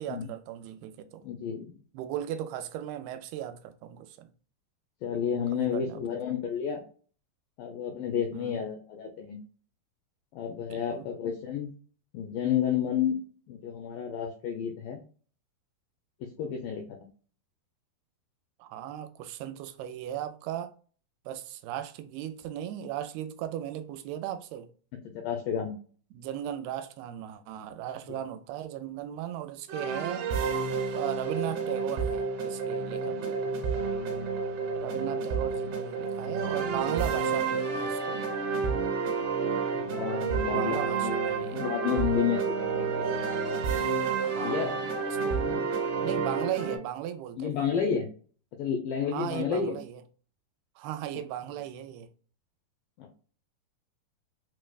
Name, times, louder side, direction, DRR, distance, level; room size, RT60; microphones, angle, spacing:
voice 1, 0.0-1.2 1.9-4.3 5.5-6.0 8.3-8.6 10.7-11.1 18.6-20.7 21.3-24.7 26.1-30.3 30.9-33.4 34.8-38.2 39.4-39.7 40.5-41.7 44.2-45.5 46.0-47.7 49.1-50.0 50.8-52.1, right 11 dB, 85° right, 2.5 m, -37 dB
voice 2, 1.2-1.8 5.0-6.8 7.6-9.4 10.3-11.7 12.1-13.2 13.5-15.0 16.2-16.9 25.0-25.7 28.1-28.2 33.1-33.6 39.7-43.3 44.4-44.8 45.4-45.6 47.4-48.1 48.6-49.8 53.0-53.1, left 8 dB, 85° left, 1.9 m, -31 dB
sound 1, 29.7-46.8, right 5 dB, 70° right, 2.1 m, -30 dB
6.0 x 2.2 x 2.3 m
omnidirectional pair, 4.4 m